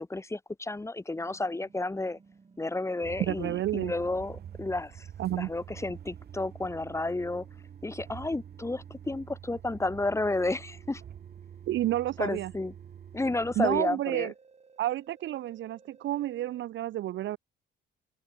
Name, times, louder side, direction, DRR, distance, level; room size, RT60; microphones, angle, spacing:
voice 1, 0.0-2.2 2.6-7.4 7.8-11.0 12.2-12.7 13.1-14.3, left 2 dB, 15° left, 1.1 m, -32 dB
sound 1, 1.2-4.6 5.7-9.2 10.4-13.5 14.2-16.6, right 4 dB, 35° right, 5.2 m, -58 dB
sound 2, 3.0-13.8, right 9 dB, 55° right, 1.0 m, -47 dB
voice 2, 3.2-3.9 5.2-5.5 11.7-12.5 13.6-14.3 14.8-17.4, right 14 dB, 70° right, 0.6 m, -30 dB
cardioid pair, 90°, 20 cm